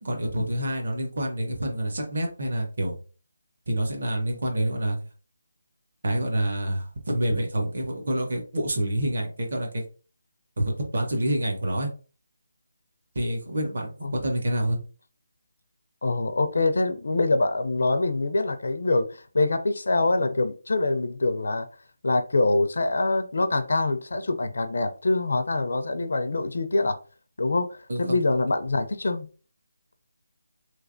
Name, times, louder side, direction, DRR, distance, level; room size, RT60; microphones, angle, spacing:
voice 1, 0.0-3.0 3.7-5.0 6.0-9.8 10.6-11.9 13.1-14.8 27.9-28.2, right 1 dB, 45° right, 0.9 m, -27 dB
voice 2, 16.0-21.7 22.0-27.0 27.4-29.3, left 2 dB, 55° left, 0.4 m, -24 dB
3.2 x 3.2 x 2.5 m
hypercardioid pair, 180°, 0 cm